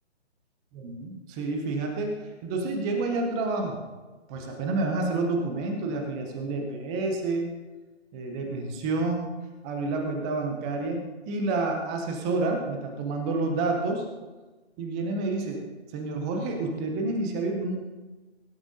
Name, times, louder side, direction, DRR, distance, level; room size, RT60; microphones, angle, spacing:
voice 1, 0.8-2.1 2.4-3.8 4.3-7.5 8.1-9.3 9.6-14.0 14.8-15.6 15.9-17.8, right 3 dB, 5° right, 3 dB, 0.4 m, -29 dB
23.0 x 12.0 x 2.6 m, 1.2 s
figure-of-eight pair, 135°, 34 cm